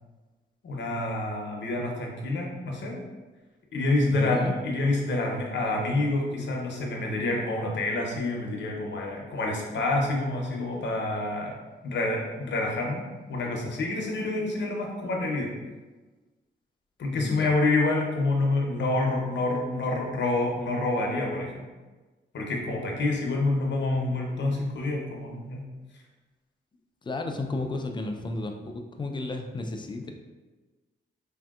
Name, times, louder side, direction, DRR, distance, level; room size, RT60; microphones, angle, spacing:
voice 1, 0.6-3.0 3.7-11.5 11.8-15.5 17.0-21.6 22.3-25.6, left 2 dB, 65° left, 0 dB, 0.7 m, -27 dB
voice 2, 4.1-4.5 17.1-17.5 27.0-30.1, left 2 dB, 25° left, 4 dB, 0.4 m, -33 dB
3.2 x 2.7 x 2.3 m, 1.2 s
cardioid pair, 85°, 20 cm